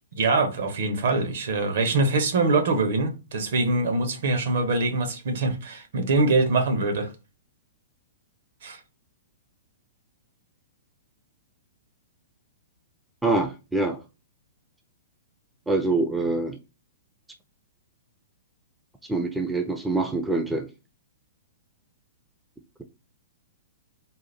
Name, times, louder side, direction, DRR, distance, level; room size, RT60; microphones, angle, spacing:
voice 1, 0.2-7.1 8.6-8.8, right 3 dB, 60° right, 1.1 m, -24 dB
voice 2, 13.2-14.0 15.7-16.6 19.1-20.7, right 2 dB, 5° right, 0.6 m, -25 dB
3.8 x 2.5 x 4.2 m
figure-of-eight pair, 110°, 0 cm